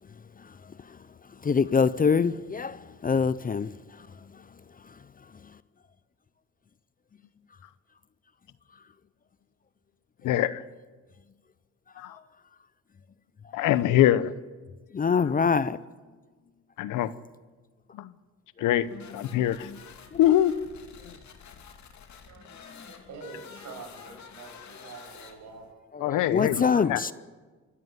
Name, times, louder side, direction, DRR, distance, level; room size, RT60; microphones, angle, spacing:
voice 1, 1.4-3.7 13.6-13.7 14.9-15.8 20.1-20.2 25.9-27.1, left 5 dB, 30° left, 0.6 m, -24 dB
voice 2, 10.2-10.6 12.0-12.2 13.5-14.3 15.1-15.5 16.8-17.1 17.9-18.1 18.6-19.7 20.2-20.5 21.0-21.1 26.0-27.0, left 12 dB, 90° left, 0.9 m, -24 dB
sound 1, 18.7-25.7, left 6 dB, 65° left, 2.6 m, -48 dB
voice 3, 22.3-25.7 26.2-27.0, right 4 dB, 65° right, 7.4 m, -46 dB
25.0 x 13.5 x 9.5 m
cardioid pair, 90°, 30 cm